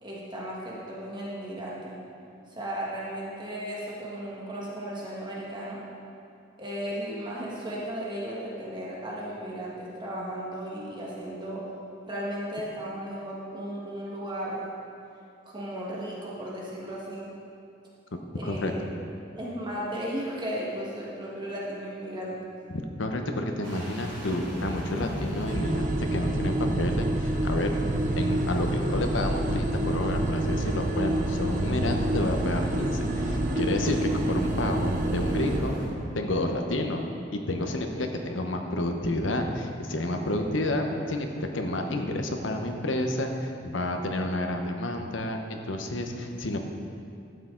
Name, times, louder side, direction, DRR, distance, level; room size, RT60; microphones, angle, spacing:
voice 1, 0.0-1.9 2.5-5.8 6.6-11.6 12.1-14.7 15.4-17.3 18.3-18.8 19.3-22.4, equal, 25° right, -5 dB, 1.6 m, -35 dB
voice 2, 18.1-18.7 22.7-27.7 28.2-35.7 36.1-37.0 37.3-46.6, left 1 dB, 90° left, 4 dB, 0.9 m, -30 dB
sound 1, 23.6-35.9, equal, 90° right, 2.7 m, -33 dB
sound 2, 25.5-35.6, right 2 dB, 45° right, 0.7 m, -29 dB
12.0 x 8.4 x 3.9 m, 2.5 s
head